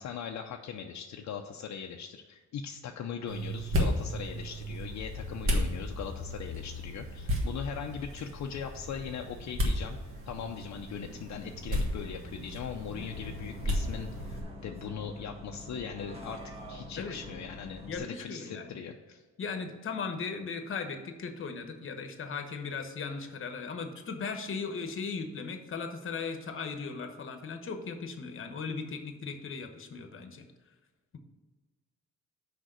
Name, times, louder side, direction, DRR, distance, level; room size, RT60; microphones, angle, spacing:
voice 1, 0.0-10.0 10.3-16.4 16.7-19.2, left 7 dB, 70° left, 3 dB, 0.6 m, -40 dB
sound 1, 3.3-14.4, left 1 dB, 45° right, 1.6 m, -34 dB
Bus, 13.0-18.0, equal, 20° right, 1.4 m, -45 dB
voice 2, 17.9-18.7 19.4-30.5, left 5 dB, 45° left, 6 dB, 1.0 m, -37 dB
6.3 x 5.2 x 6.6 m, 1.3 s
cardioid pair, 140°, 29 cm